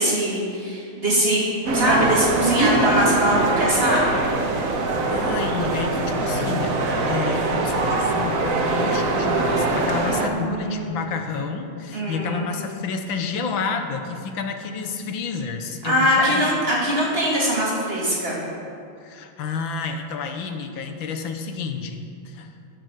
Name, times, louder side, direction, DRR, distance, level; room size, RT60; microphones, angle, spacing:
voice 1, 0.0-1.5 1.7-4.1 10.0-11.1 11.9-12.5 15.8-18.4, equal, 25° right, -5 dB, 2.9 m, -22 dB
sound 1, 1.7-10.3, right 2 dB, 50° right, 1.2 m, -22 dB
voice 2, 4.8-6.8 7.1-16.5 19.0-22.5, left 5 dB, 70° left, 6 dB, 1.6 m, -30 dB
14.0 x 6.4 x 6.7 m, 2.5 s
omnidirectional pair, 2.4 m